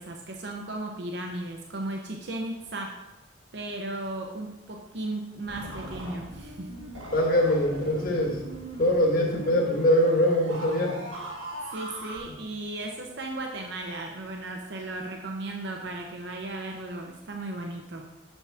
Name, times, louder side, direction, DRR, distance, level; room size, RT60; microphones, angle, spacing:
voice 1, 0.0-3.0 3.5-6.7 11.7-18.1, right 2 dB, 60° right, 1 dB, 0.8 m, -35 dB
sound 1, 5.5-12.2, right 1 dB, 90° right, 1.6 m, -39 dB
voice 2, 7.1-8.4 8.8-10.9, left 1 dB, 45° left, 0 dB, 1.4 m, -23 dB
7.1 x 7.0 x 3.5 m, 1.0 s
head